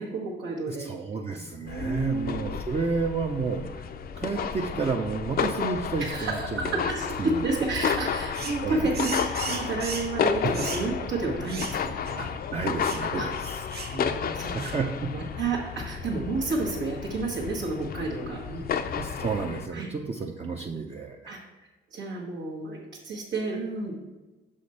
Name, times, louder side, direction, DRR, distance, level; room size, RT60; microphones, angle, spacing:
voice 1, 0.0-0.9 1.4-1.5 1.8-2.4 6.0-11.9 13.1-13.3 13.9-14.8 15.1-18.6 19.7-19.9 21.2-21.4 21.9-24.0, right 3 dB, 75° right, -4 dB, 1.3 m, -30 dB
voice 2, 0.7-3.9 4.1-6.9 7.2-7.4 7.8-8.0 8.6-8.9 10.4-10.5 12.1-13.6 14.2-15.1 18.9-21.3, right 4 dB, 30° right, 0 dB, 0.6 m, -31 dB
sound 1, 1.7-19.7, left 7 dB, 50° left, 0.5 m, -32 dB
sound 2, 8.3-8.6 8.9-10.2 10.5-10.9 11.5-11.8 12.1-12.2 12.8-13.1 13.7-14.0 14.6-14.8, right 4 dB, 55° right, 0.9 m, -36 dB
6.5 x 5.0 x 4.1 m, 1.2 s
cardioid pair, 90°, 20 cm